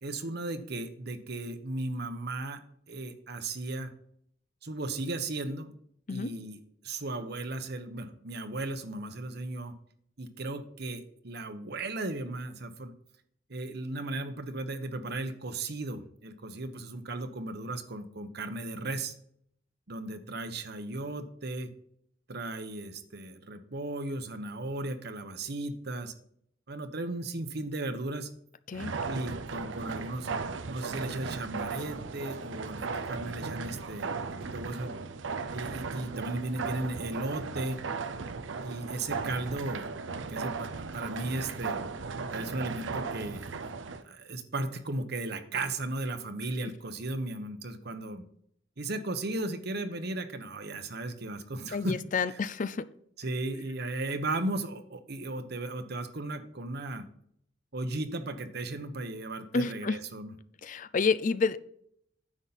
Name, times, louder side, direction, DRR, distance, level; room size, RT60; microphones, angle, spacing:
voice 1, 0.0-2.6 2.9-3.9 4.6-5.7 6.1-9.7 10.2-12.9 13.5-19.1 19.9-21.7 22.3-26.1 26.7-28.3 29.0-30.3 30.7-34.9 35.5-37.8 38.6-39.9 40.3-41.8 42.3-43.6 44.0-48.2 48.8-52.4 53.2-57.1 57.7-60.3, right 2 dB, 60° right, 9 dB, 1.0 m, -36 dB
sound 1, 28.7-44.0, right 4 dB, 80° right, 0.6 m, -36 dB
voice 2, 51.7-52.9 59.5-60.0 60.6-61.6, left 4 dB, 45° left, 14 dB, 0.5 m, -29 dB
9.9 x 7.2 x 4.1 m, 0.68 s
head